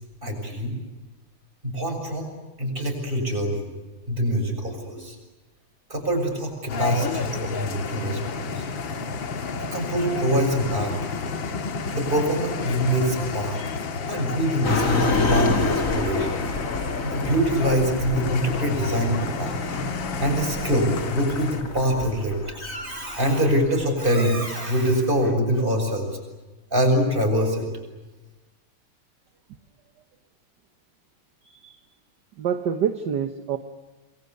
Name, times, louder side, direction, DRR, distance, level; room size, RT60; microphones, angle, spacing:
voice 1, 0.2-0.8 1.6-2.3 2.6-3.7 4.1-5.2 5.9-8.6 9.6-10.9 11.9-13.6 14.1-16.4 17.0-26.1 26.7-27.7, equal, 25° right, 3 dB, 7.1 m, -24 dB
sound 1, 6.7-21.6, left 4 dB, 65° left, 2.3 m, -31 dB
sound 2, 14.6-23.8, left 3 dB, 40° left, 2.7 m, -29 dB
voice 2, 31.4-31.8 32.4-33.6, right 8 dB, 55° right, 8 dB, 1.6 m, -27 dB
28.0 x 22.5 x 9.4 m, 1.2 s
omnidirectional pair, 2.4 m